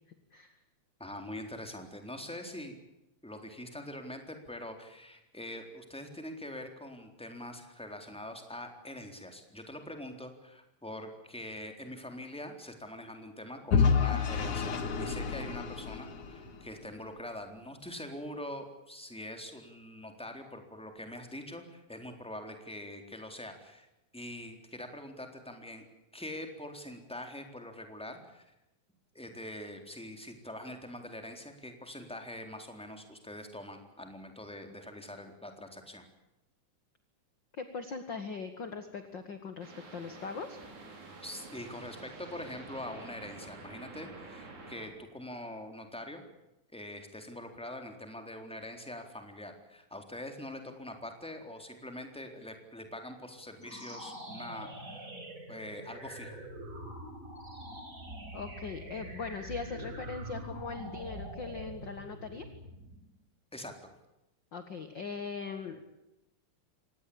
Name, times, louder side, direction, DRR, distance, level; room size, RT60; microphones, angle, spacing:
voice 1, 1.0-2.8 3.2-23.9 24.1-25.8 26.1-28.5 29.1-36.0 41.2-46.2 46.7-55.1 55.5-56.4 63.5-63.7, left 1 dB, ahead, 5 dB, 3.6 m, -44 dB
Vehicle / Engine, 13.7-16.7, left 6 dB, 75° left, 3.6 m, -29 dB
voice 2, 37.5-40.6 58.3-62.5 64.5-65.8, left 5 dB, 40° left, 8 dB, 2.1 m, -40 dB
sound 1, 39.6-44.9, right 3 dB, 75° right, 5.7 m, -48 dB
sound 2, 53.5-63.1, right 1 dB, 25° right, 5.2 m, -44 dB
25.5 x 19.5 x 8.7 m, 0.92 s
omnidirectional pair, 3.4 m